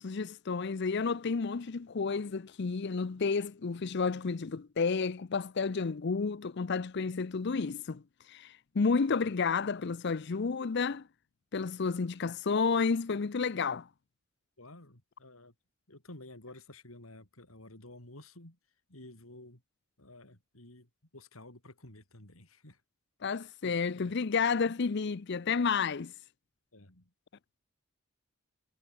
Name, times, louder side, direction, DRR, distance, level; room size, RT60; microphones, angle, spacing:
voice 1, 0.0-8.0 8.3-11.0 11.5-13.9 23.2-26.1, left 5 dB, 55° left, 0.6 m, -31 dB
voice 2, 14.6-15.5 15.9-18.6 18.9-19.6 20.0-22.8 23.3-23.7 24.0-24.1 26.7-27.1, left 1 dB, 85° left, 5.4 m, -52 dB
head